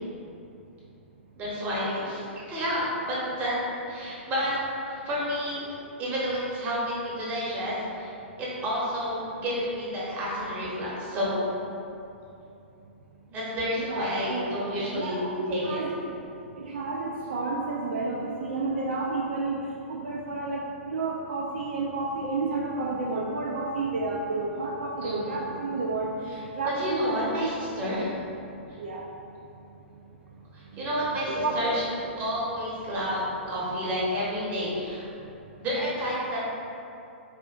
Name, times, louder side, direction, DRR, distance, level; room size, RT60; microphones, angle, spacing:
voice 1, 1.4-3.6 3.9-4.6 4.9-5.7 6.0-8.1 8.4-11.5 13.3-15.8 25.0-25.4 26.3-26.4 26.8-28.1 30.5-31.8 32.2-35.0 35.6-36.4, equal, 25° right, -6 dB, 0.9 m, -30 dB
voice 2, 13.8-15.9 16.6-19.6 19.9-26.1 26.6-27.5 28.8-29.0 30.7-30.8 31.3-31.7, right 3 dB, 65° right, -3 dB, 0.3 m, -31 dB
4.1 x 2.5 x 2.4 m, 2.7 s
figure-of-eight pair, 110°, 7 cm